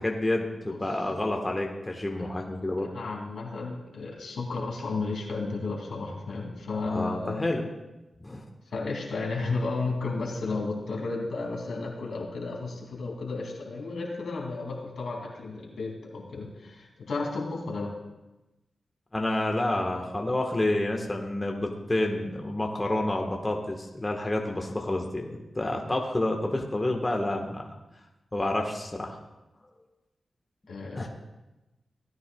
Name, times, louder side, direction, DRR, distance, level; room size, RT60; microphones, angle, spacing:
voice 1, 0.0-2.9 6.9-7.6 8.2-8.4 19.1-27.7 28.3-29.2 30.9-31.1, left 1 dB, 25° left, 1 dB, 1.3 m, -29 dB
voice 2, 2.8-7.5 8.7-17.9 30.7-31.1, left 3 dB, 80° left, -1 dB, 2.5 m, -33 dB
17.0 x 9.6 x 2.3 m, 1.0 s
cardioid pair, 55°, 0 cm